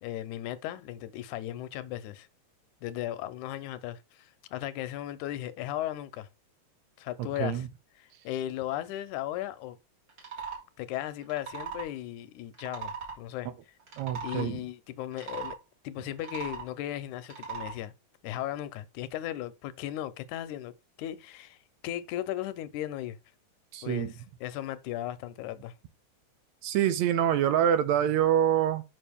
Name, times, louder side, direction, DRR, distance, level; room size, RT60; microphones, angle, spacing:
voice 1, 0.0-2.3 2.8-6.3 7.0-7.7 8.0-9.8 10.8-13.5 14.2-15.6 15.8-17.9 18.2-20.7 21.0-23.2 23.8-25.7, left 13 dB, 85° left, 2.1 m, -36 dB
sound 1, 10.1-10.6 11.2-11.9 12.5-13.2 13.8-14.5 15.1-15.5 16.1-16.7 17.2-17.7, right 5 dB, 40° right, 2.6 m, -38 dB
voice 2, 14.0-14.5 23.7-24.1 26.6-28.8, right 10 dB, 80° right, 1.9 m, -25 dB
6.7 x 5.7 x 3.5 m
omnidirectional pair, 3.4 m